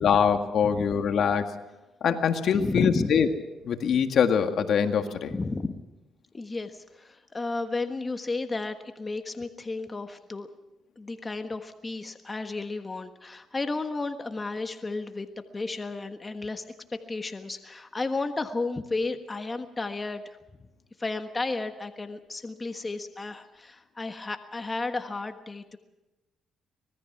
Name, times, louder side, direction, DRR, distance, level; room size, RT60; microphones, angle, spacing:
voice 1, 0.0-1.5 2.0-3.3 3.7-5.3, left 7 dB, 65° left, 6 dB, 1.8 m, -23 dB
voice 2, 2.5-3.1 5.3-5.8 6.3-10.5 11.0-15.3 15.5-16.6 17.1-20.4 21.0-25.8, left 3 dB, 25° left, 7 dB, 1.4 m, -33 dB
25.0 x 19.5 x 5.9 m, 1.0 s
cardioid pair, 90°, 0 cm